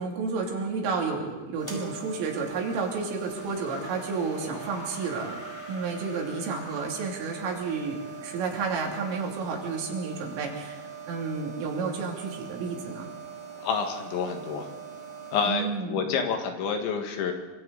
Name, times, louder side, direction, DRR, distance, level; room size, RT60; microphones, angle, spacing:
voice 1, 0.0-5.4 5.7-13.1 15.5-16.0, right 4 dB, 85° right, 0 dB, 5.5 m, -31 dB
sound 1, 1.6-15.5, right 6 dB, 5° left, 4.9 m, -42 dB
sound 2, 2.9-9.8, left 2 dB, 30° left, 3.1 m, -48 dB
voice 2, 13.6-14.7 15.3-17.3, left 6 dB, 70° left, 4 dB, 4.0 m, -28 dB
26.5 x 25.5 x 4.1 m, 1.2 s
omnidirectional pair, 5.6 m